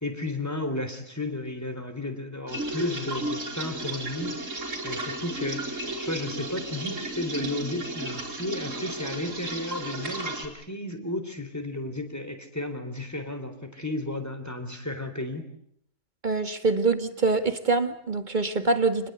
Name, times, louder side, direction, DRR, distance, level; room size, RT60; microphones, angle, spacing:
voice 1, 0.0-4.3 4.6-15.4, left 2 dB, 10° left, 3.8 m, -33 dB
sound 1, 2.5-10.5, right 2 dB, 45° right, 4.6 m, -34 dB
voice 2, 16.2-19.1, right 3 dB, 30° right, 1.9 m, -25 dB
28.5 x 21.0 x 8.2 m
omnidirectional pair, 1.8 m